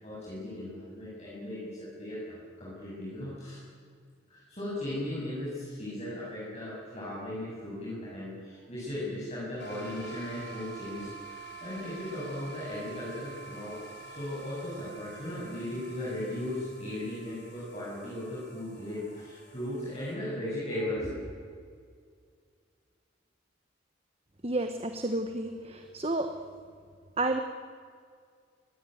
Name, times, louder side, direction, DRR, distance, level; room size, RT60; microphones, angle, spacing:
voice 1, 0.0-3.6 4.3-21.2, left 1 dB, 35° left, -8 dB, 7.9 m, -37 dB
sound 1, 9.6-20.1, right 4 dB, 60° left, 4.8 m, -47 dB
voice 2, 24.4-26.3 27.2-27.4, right 2 dB, 30° right, 6 dB, 1.2 m, -30 dB
24.5 x 20.0 x 9.5 m, 2.1 s
head